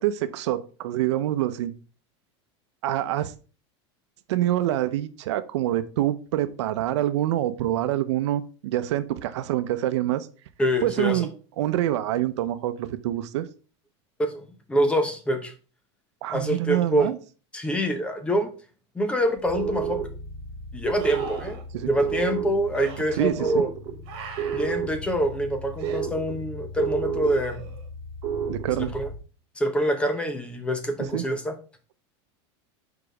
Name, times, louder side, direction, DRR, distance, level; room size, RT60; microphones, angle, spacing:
voice 1, 0.0-1.7 2.8-3.3 4.3-10.3 10.8-11.3 11.6-13.5 16.2-17.2 21.7-21.9 23.2-23.6 28.5-28.9 31.1-31.2, right 13 dB, 80° right, 12 dB, 0.7 m, -26 dB
voice 2, 10.6-11.3 14.2-15.5 16.3-17.1 17.5-18.5 18.9-20.0 20.7-21.6 21.9-23.7 24.5-27.7 28.7-29.1 29.6-31.5, equal, 5° left, 7 dB, 0.7 m, -25 dB
sound 1, 19.4-29.2, right 5 dB, 25° right, 1.4 m, -32 dB
sound 2, 19.4-19.5 21.0-21.6 22.7-23.0 24.1-24.8 25.8-26.0 27.2-27.9 31.0-31.1, right 5 dB, 55° right, 1.9 m, -40 dB
4.9 x 4.6 x 4.9 m, 0.37 s
supercardioid pair, 165°, 15 cm